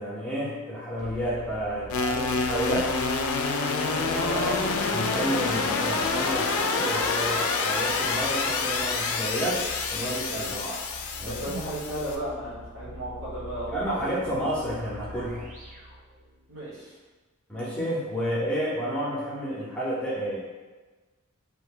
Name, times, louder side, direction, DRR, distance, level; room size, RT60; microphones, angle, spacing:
voice 1, 0.0-2.9 4.9-10.7 11.2-11.6 13.7-15.5 17.5-20.4, equal, 5° left, -8 dB, 0.6 m, -30 dB
sound 1, 1.0-16.6, equal, 35° right, 0.5 m, -45 dB
sound 2, 1.9-12.2, left 4 dB, 70° left, 0.3 m, -27 dB
voice 2, 3.7-4.6 10.3-10.5 11.2-14.1 16.5-16.9, right 1 dB, 60° right, -7 dB, 1.1 m, -34 dB
2.8 x 2.1 x 3.6 m, 1.3 s
head